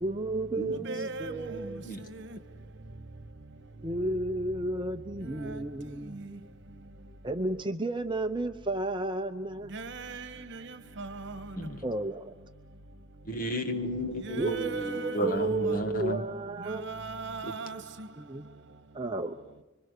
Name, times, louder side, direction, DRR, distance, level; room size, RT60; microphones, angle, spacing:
voice 1, 0.0-1.8 3.8-6.3 7.2-9.8 11.8-12.3 14.4-17.1 18.2-18.5 18.9-19.4, right 2 dB, 25° right, 0.7 m, -32 dB
voice 2, 0.8-1.3 9.7-10.3 11.0-11.3 14.2-15.4 16.9-17.8, right 3 dB, 60° right, 1.4 m, -37 dB
voice 3, 13.3-16.3 17.4-17.5, right 1 dB, 45° left, 1.7 m, -33 dB
26.0 x 24.5 x 6.7 m
head